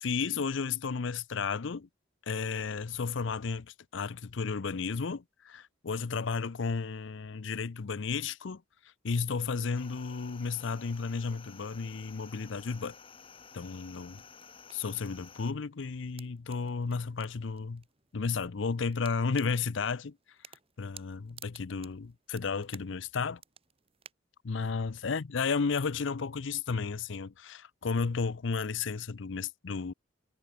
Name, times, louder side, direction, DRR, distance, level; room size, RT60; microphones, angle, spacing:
voice 1, 0.0-1.9 2.3-8.6 9.0-12.9 13.5-14.2 14.7-17.8 18.1-20.2 20.8-23.4 24.4-29.9, left 5 dB, 65° left, 0.6 m, -33 dB
sound 1, 9.7-15.5, left 6 dB, 25° left, 1.2 m, -53 dB
sound 2, 12.8-24.1, right 8 dB, 30° right, 1.9 m, -57 dB
head